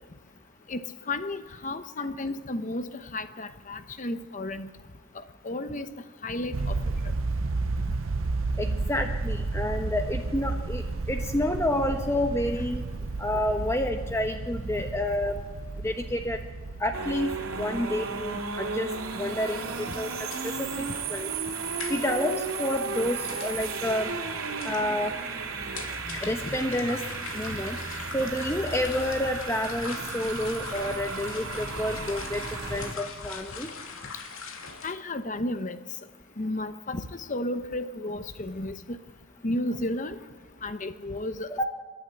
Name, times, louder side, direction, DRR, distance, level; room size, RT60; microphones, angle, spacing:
voice 1, 1.1-4.7 5.1-5.9 6.2-6.8 7.0-7.1 14.7-14.8 19.9-20.0 20.9-21.0 26.4-26.5 34.8-35.8 36.4-39.0 39.4-40.2 40.6-41.6, left 1 dB, 35° left, 11 dB, 0.9 m, -33 dB
sound 1, 6.5-19.8, right 3 dB, 70° right, 0.7 m, -32 dB
voice 2, 8.6-12.8 13.2-15.4 15.8-16.4 16.8-17.3 17.6-20.1 20.4-21.3 21.9-24.1 24.6-25.1 26.1-27.0 27.3-27.8 28.1-32.4 32.7-33.7 41.6-41.7, left 1 dB, 15° left, 5 dB, 1.0 m, -29 dB
sound 2, 16.9-32.9, right 4 dB, 90° right, 2.6 m, -34 dB
sound 3, 19.5-34.9, left 5 dB, 85° left, 2.7 m, -42 dB
29.5 x 11.5 x 9.0 m, 1.4 s
head